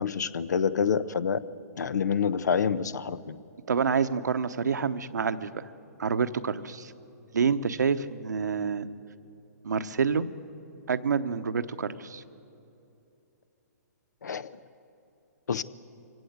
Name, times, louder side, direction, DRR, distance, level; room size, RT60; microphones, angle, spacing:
voice 1, 0.0-1.4 1.8-3.4 14.2-14.5 15.5-15.6, left 6 dB, 80° left, 17 dB, 0.8 m, -27 dB
voice 2, 3.7-5.7 6.0-6.9 7.3-8.9 9.6-10.3 10.9-12.2, right 6 dB, 85° right, 10 dB, 1.0 m, -27 dB
24.0 x 17.0 x 8.1 m, 2.8 s
hypercardioid pair, 140°, 9 cm